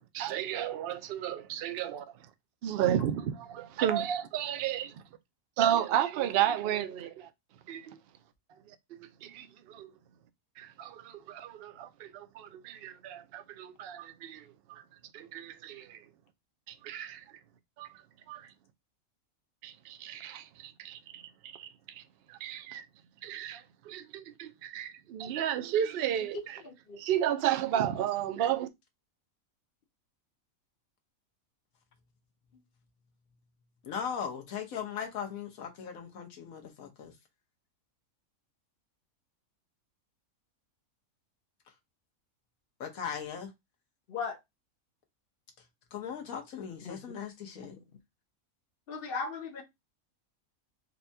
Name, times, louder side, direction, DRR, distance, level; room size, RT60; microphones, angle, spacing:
voice 1, 0.2-2.0 2.6-4.8 5.6-7.3 7.7-8.0 8.7-9.9 10.6-14.8 15.1-16.0 16.7-17.2 17.8-17.9 18.3-18.5 19.6-21.2 21.5-22.0 22.3-22.8 23.2-26.6 27.0-28.7, right 10 dB, 65° right, 0.6 m, -33 dB
voice 2, 33.8-37.1 42.8-43.5 45.9-47.8, left 7 dB, 75° left, 1.3 m, -38 dB
voice 3, 48.9-49.6, left 5 dB, 55° left, 0.7 m, -36 dB
4.0 x 2.2 x 2.6 m
omnidirectional pair, 1.5 m